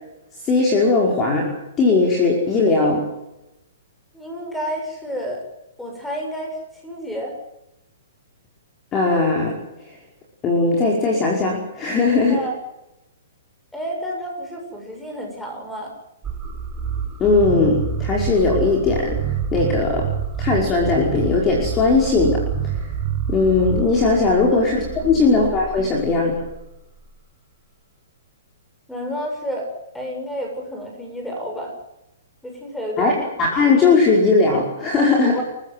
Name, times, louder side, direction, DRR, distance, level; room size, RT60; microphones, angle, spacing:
voice 1, 0.4-3.1 8.9-9.6 10.4-12.4 17.2-19.2 19.5-20.1 20.4-22.9 23.3-26.4 33.0-35.4, left 3 dB, 20° left, -1 dB, 5.3 m, -18 dB
voice 2, 4.1-5.4 5.8-6.6 6.8-7.4 12.3-12.6 13.7-15.9 24.5-24.6 25.0-25.3 28.9-31.7 32.4-33.1 35.2-35.4, equal, 5° left, 1 dB, 7.1 m, -30 dB
sound 1, 16.2-27.1, right 6 dB, 15° right, 4.2 m, -28 dB
30.0 x 15.0 x 7.9 m, 0.90 s
hypercardioid pair, 155°, 0 cm